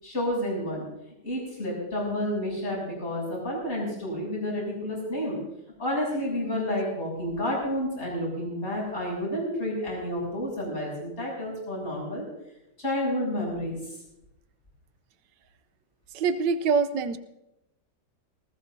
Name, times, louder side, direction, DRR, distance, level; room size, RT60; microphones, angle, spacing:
voice 1, 0.0-0.9 1.2-5.4 5.8-12.2 12.8-14.0, left 1 dB, 40° left, -4 dB, 7.7 m, -30 dB
voice 2, 16.1-17.2, right 5 dB, 90° right, 11 dB, 1.4 m, -24 dB
20.0 x 18.5 x 2.7 m, 0.88 s
omnidirectional pair, 1.8 m